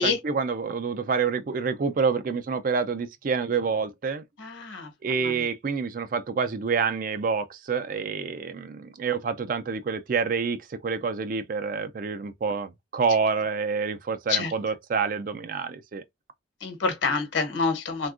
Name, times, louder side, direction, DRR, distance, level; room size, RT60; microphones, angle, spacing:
voice 1, 0.0-4.2 5.0-16.0, right 5 dB, 45° right, 0.3 m, -27 dB
voice 2, 4.4-5.5 14.3-14.5 16.6-18.1, left 4 dB, 75° left, 1.0 m, -27 dB
3.5 x 2.2 x 2.4 m
head